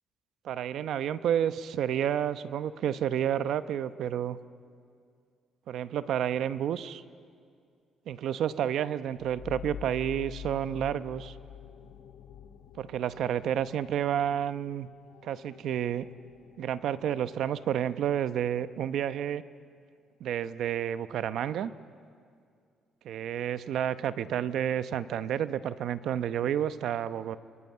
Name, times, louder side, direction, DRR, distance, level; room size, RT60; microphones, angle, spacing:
voice 1, 0.4-4.4 5.7-7.0 8.1-11.3 12.8-14.9 15.2-16.1 16.6-19.4 20.2-21.7 23.0-27.4, right 10 dB, 70° right, 13 dB, 0.9 m, -30 dB
sound 1, 9.1-18.5, left 9 dB, 80° left, 1.9 m, -47 dB
29.5 x 22.0 x 8.6 m, 2.3 s
cardioid pair, 130°, 0 cm